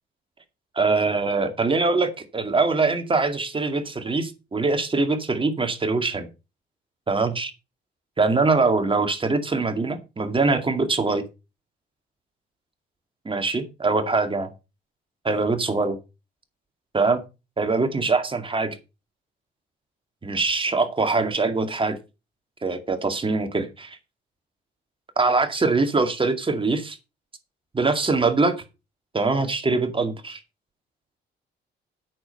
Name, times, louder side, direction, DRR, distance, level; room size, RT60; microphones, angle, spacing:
voice 1, 0.8-6.3 7.1-7.5 8.2-11.2 13.3-14.5 15.2-16.0 16.9-17.2 17.6-18.8 20.2-22.0 22.6-24.0 25.2-27.0 27.7-28.5 29.1-30.4, right 3 dB, 25° right, 7 dB, 2.2 m, -23 dB
8.8 x 6.6 x 6.5 m, 0.28 s
cardioid pair, 90°, 20 cm